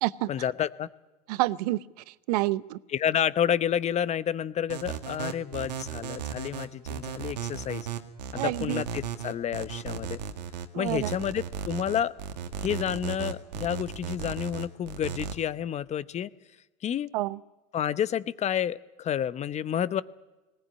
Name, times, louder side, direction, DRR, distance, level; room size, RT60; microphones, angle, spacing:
voice 1, 0.3-0.9 2.9-7.9 8.3-10.2 10.7-12.1 12.6-16.3 16.8-17.1 17.7-20.0, left 9 dB, 35° left, 17 dB, 0.8 m, -30 dB
voice 2, 1.3-1.8 2.3-2.8 8.3-8.8 10.7-11.1 17.1-17.4, right 18 dB, 70° right, 18 dB, 0.8 m, -28 dB
sound 1, 4.7-15.3, right 8 dB, 90° right, 1.8 m, -35 dB
20.0 x 17.5 x 9.9 m, 1.1 s
hypercardioid pair, 95°, 21 cm